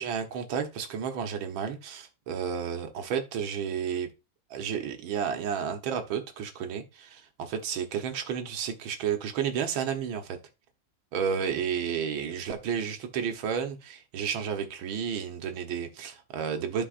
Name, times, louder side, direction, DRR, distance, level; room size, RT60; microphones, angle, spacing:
voice 1, 0.0-4.1 4.5-10.4 11.1-16.8, right 7 dB, 90° right, 1.9 m, -32 dB
13.0 x 4.7 x 2.5 m
omnidirectional pair, 2.1 m